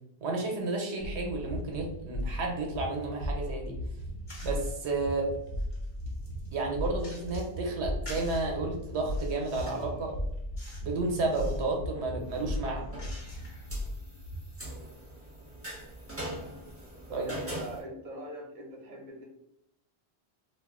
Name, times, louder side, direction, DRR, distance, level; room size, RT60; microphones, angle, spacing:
voice 1, 0.2-3.7 4.4-5.3 6.5-10.1 10.8-12.9 17.1-17.3, right 3 dB, 80° right, 1 dB, 0.9 m, -32 dB
sound 1, 1.0-14.6, equal, 75° left, 0.8 m, -37 dB
sound 2, 4.3-4.8 5.3-7.6 8.1-8.5 9.0-9.9 10.6-10.9 11.2-11.7 12.2-13.7, left 1 dB, 45° left, 1.0 m, -50 dB
sound 3, 12.2-17.8, right 1 dB, 15° right, 1.0 m, -42 dB
voice 2, 17.1-19.2, right 1 dB, 50° right, 0 dB, 0.8 m, -42 dB
2.4 x 2.3 x 3.5 m, 0.81 s
omnidirectional pair, 1.1 m